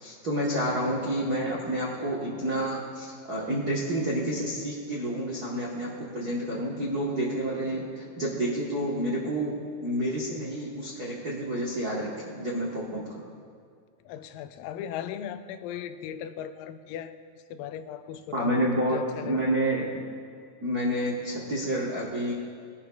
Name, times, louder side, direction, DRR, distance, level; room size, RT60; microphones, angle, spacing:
voice 1, 0.0-9.5 9.8-13.2 18.3-20.0 20.6-22.3, right 1 dB, 75° right, -6 dB, 0.8 m, -29 dB
voice 2, 14.0-17.2 17.5-19.4, left 9 dB, 85° left, 10 dB, 2.3 m, -37 dB
20.0 x 11.0 x 2.3 m, 2.1 s
omnidirectional pair, 3.9 m